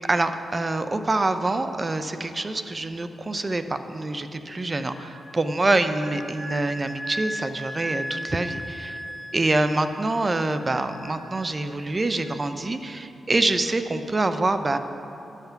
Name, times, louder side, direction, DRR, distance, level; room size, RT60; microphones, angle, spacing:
voice 1, 0.1-9.0 9.3-14.8, right 2 dB, 35° right, 9 dB, 0.6 m, -25 dB
Wind instrument woodwind instrument, 4.8-12.2, equal, 15° left, 2.1 m, -38 dB
11.5 x 5.8 x 5.8 m, 2.9 s
cardioid pair, 55°, 0 cm